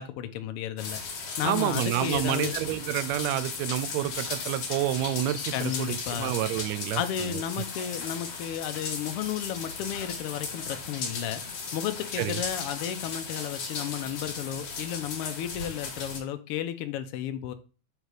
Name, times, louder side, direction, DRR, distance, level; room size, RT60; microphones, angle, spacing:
voice 1, 0.0-2.5 5.5-6.3 6.9-11.4 11.7-17.5, left 10 dB, 75° left, 1.4 m, -33 dB
sound 1, 0.8-16.2, left 4 dB, 60° left, 2.3 m, -36 dB
voice 2, 1.4-7.4 12.2-12.4, right 13 dB, 80° right, 1.7 m, -29 dB
6.7 x 3.6 x 4.8 m
omnidirectional pair, 3.4 m